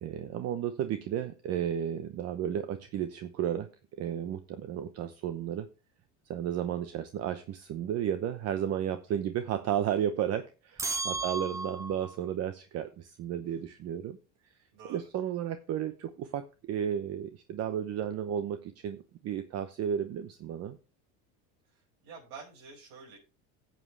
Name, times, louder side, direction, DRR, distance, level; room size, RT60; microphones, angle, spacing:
voice 1, 0.0-3.7 4.0-5.7 6.3-14.2 14.9-20.8, right 9 dB, 45° right, 10 dB, 0.9 m, -33 dB
sound 1, 10.8-12.2, right 3 dB, 10° right, 0.6 m, -34 dB
voice 2, 14.7-15.1 21.6-23.2, right 5 dB, 65° right, -3 dB, 5.4 m, -49 dB
14.5 x 7.9 x 3.3 m, 0.32 s
cardioid pair, 135°, 36 cm